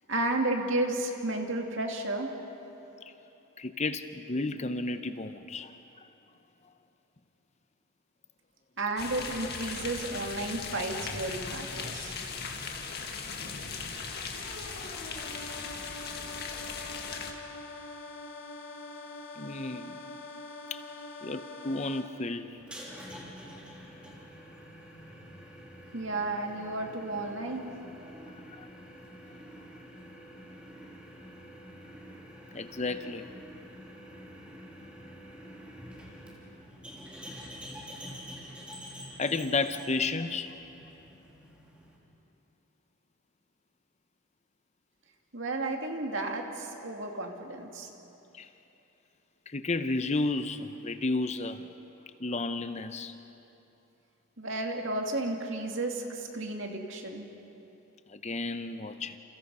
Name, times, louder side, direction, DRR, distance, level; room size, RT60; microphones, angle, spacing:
voice 1, 0.1-2.3 8.8-12.1 25.9-27.7 45.3-47.9 54.4-57.3, right 2 dB, 55° right, 2 dB, 2.5 m, -32 dB
voice 2, 3.6-6.1 19.4-20.0 20.7-20.8 21.2-22.6 28.5-28.7 32.5-33.2 39.2-40.6 48.3-48.5 49.5-51.7 52.2-53.2 58.1-59.2, left 3 dB, 30° left, 9 dB, 0.7 m, -32 dB
sound 1, 9.0-17.3, left 5 dB, 45° left, 2.0 m, -38 dB
sound 2, 14.3-22.0, left 2 dB, 70° left, 5.3 m, -44 dB
sound 3, 22.6-42.0, equal, 5° right, 3.4 m, -47 dB
29.0 x 28.5 x 5.5 m, 3.0 s
head